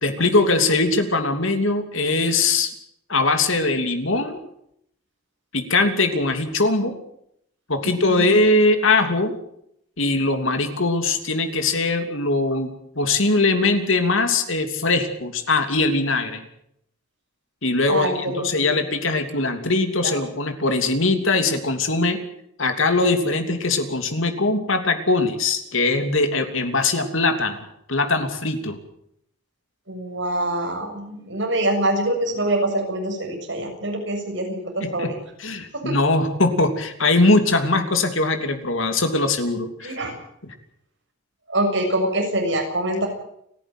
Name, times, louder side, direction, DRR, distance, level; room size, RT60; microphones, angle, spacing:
voice 1, 0.0-2.7 3.1-4.4 5.5-6.9 7.7-9.3 10.0-16.4 17.6-22.2 22.6-28.8 34.8-35.1 35.4-39.9, left 2 dB, 75° left, 7 dB, 3.1 m, -21 dB
voice 2, 17.9-18.8 20.0-20.1 29.9-35.2 35.8-36.0 39.8-40.1 41.5-43.1, right 1 dB, 60° right, 2 dB, 7.1 m, -25 dB
30.0 x 11.0 x 9.2 m, 0.73 s
head